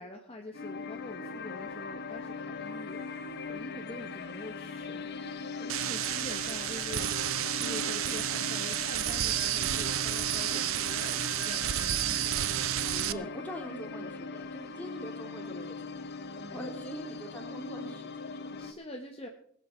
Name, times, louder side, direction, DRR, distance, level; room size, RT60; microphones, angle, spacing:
voice 1, 0.0-3.0 3.5-12.3 12.8-13.3 16.4-16.7 18.6-19.3, left 1 dB, 30° left, 2 dB, 1.1 m, -45 dB
sound 1, 0.5-18.7, left 4 dB, 55° left, 1.0 m, -40 dB
sound 2, 5.7-13.1, right 12 dB, 80° right, 0.5 m, -31 dB
voice 2, 6.0-6.4 12.8-16.1 16.5-18.5, equal, 10° left, -2 dB, 3.7 m, -43 dB
20.5 x 8.5 x 4.4 m, 0.64 s
head